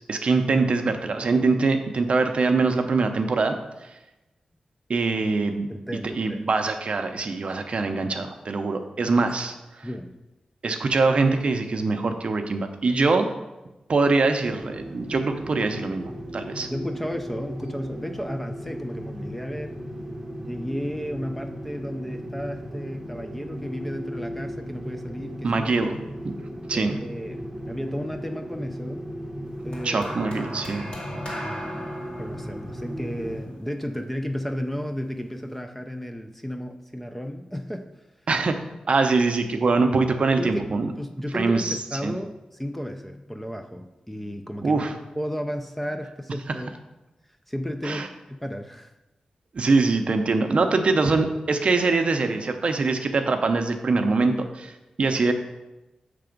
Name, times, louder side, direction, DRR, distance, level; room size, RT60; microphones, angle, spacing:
voice 1, 0.1-3.9 4.9-5.7 6.1-9.9 10.6-13.3 13.9-16.7 25.4-26.0 26.2-26.3 26.7-27.0 29.8-30.8 38.3-38.6 38.9-40.9 41.3-41.8 42.0-42.1 44.6-44.9 47.8-48.1 49.5-55.3, right 3 dB, 60° right, 6 dB, 0.6 m, -23 dB
voice 2, 5.7-6.4 9.1-9.3 9.8-10.1 16.7-19.8 20.4-25.6 26.7-29.1 29.6-30.1 32.2-37.9 40.4-40.7 41.0-44.8 45.2-46.7 47.5-48.9, equal, 5° left, 5 dB, 0.5 m, -33 dB
sound 1, 14.4-33.4, equal, 15° right, 0.8 m, -36 dB
sound 2, 29.7-34.2 35.1-35.3, equal, 55° left, 1.9 m, -37 dB
6.7 x 3.4 x 5.1 m, 1.0 s
wide cardioid pair, 85°, 2 cm